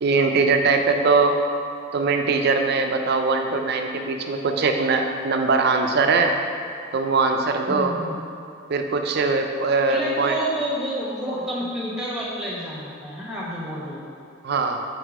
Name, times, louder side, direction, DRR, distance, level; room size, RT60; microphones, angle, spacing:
voice 1, 0.0-1.4 1.9-6.3 6.9-7.9 8.7-10.4 14.4-14.8, right 4 dB, 55° right, 5 dB, 0.5 m, -21 dB
voice 2, 7.7-8.2 9.9-14.0, right 1 dB, ahead, -5 dB, 1.2 m, -29 dB
4.7 x 4.3 x 5.0 m, 2.4 s
head